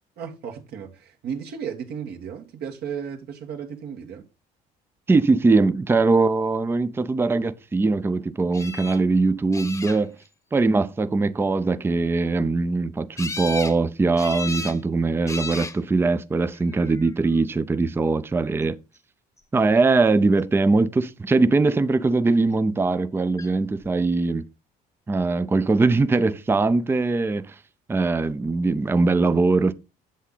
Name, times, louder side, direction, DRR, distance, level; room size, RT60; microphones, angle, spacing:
voice 1, 0.2-4.2, right 7 dB, 70° right, 1.7 m, -34 dB
voice 2, 5.1-10.1 10.5-18.8 19.5-24.5 25.1-27.5 27.9-29.7, right 3 dB, 15° right, 0.5 m, -21 dB
sound 1, 8.5-9.0 9.5-10.3 13.2-13.8 14.2-14.8 15.3-15.8 16.7-17.2 23.4-23.5 23.8-23.9, left 3 dB, 15° left, 0.9 m, -34 dB
8.3 x 7.3 x 3.9 m
cardioid pair, 110°, 17 cm